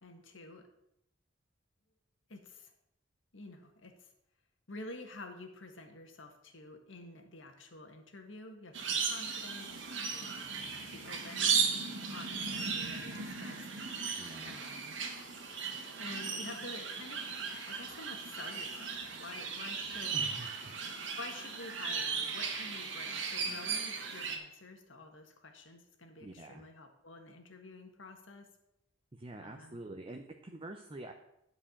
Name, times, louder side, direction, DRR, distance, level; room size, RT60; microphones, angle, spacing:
voice 1, 0.0-0.7 2.3-2.7 3.3-4.1 4.7-10.4 10.9-13.7 14.4-15.0 16.0-17.3 17.7-20.2 21.2-28.5 29.4-29.8, left 2 dB, 80° left, 5 dB, 1.6 m, -49 dB
sound 1, 8.7-24.4, right 5 dB, 70° right, 1.5 m, -36 dB
voice 2, 14.2-14.6 20.1-20.7 21.0-21.2 26.2-26.7 29.1-31.1, right 2 dB, 30° right, 3 dB, 0.7 m, -46 dB
11.0 x 4.9 x 7.1 m, 0.80 s
head